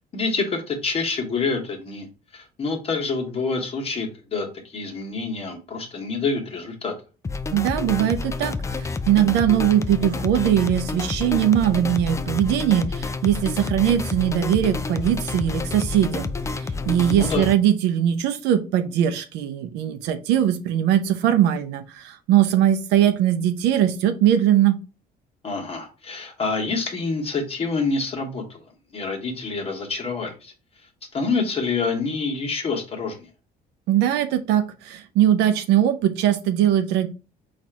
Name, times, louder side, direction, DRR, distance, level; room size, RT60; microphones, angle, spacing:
voice 1, 0.1-2.1 2.3-6.9 17.1-17.4 25.4-28.6 28.9-30.5 31.1-33.3, left 4 dB, 35° left, 1 dB, 1.2 m, -27 dB
sound 1, 7.2-17.5, left 4 dB, 15° left, 0.4 m, -29 dB
voice 2, 7.5-24.8 33.9-37.1, right 11 dB, 85° right, 8 dB, 0.5 m, -21 dB
4.2 x 2.5 x 4.4 m, 0.34 s
cardioid pair, 110°, 17 cm